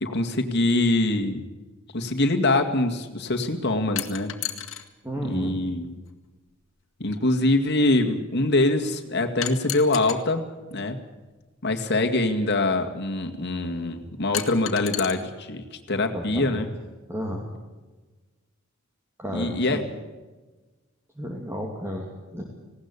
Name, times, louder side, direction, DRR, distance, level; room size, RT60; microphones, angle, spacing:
voice 1, 0.0-1.4 1.9-4.3 5.2-6.0 7.0-11.0 11.6-16.7 19.3-19.8, left 2 dB, 55° left, 5 dB, 2.2 m, -24 dB
sound 1, 4.0-4.8 6.1-6.2 9.4-10.2 11.7-11.8 14.3-15.1, left 11 dB, 75° left, 1.9 m, -31 dB
voice 2, 5.0-5.6 16.1-16.7 17.1-17.5 19.2-19.8 21.2-22.4, equal, 15° right, 0 dB, 2.5 m, -32 dB
19.5 x 17.5 x 8.3 m, 1.2 s
head